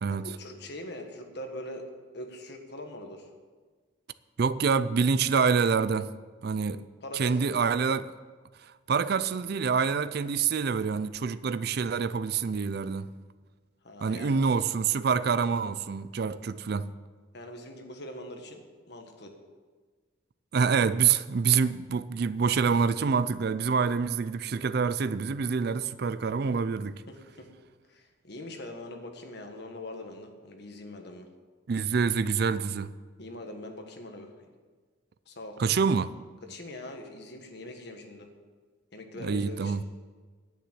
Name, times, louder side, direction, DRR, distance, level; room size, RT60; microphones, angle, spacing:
voice 1, 0.2-1.9 2.1-3.3 7.0-7.7 13.8-14.4 17.3-19.3 27.1-27.5 27.9-31.3 33.2-34.3 35.2-35.6 36.4-38.3 38.9-39.8, left 1 dB, 55° left, 1.5 m, -42 dB
voice 2, 4.4-6.1 6.4-6.8 7.1-8.1 8.6-13.1 14.0-16.9 20.5-27.0 31.7-32.9 35.6-36.1 39.2-39.8, right 5 dB, 50° right, 0.4 m, -26 dB
9.9 x 9.0 x 7.6 m
head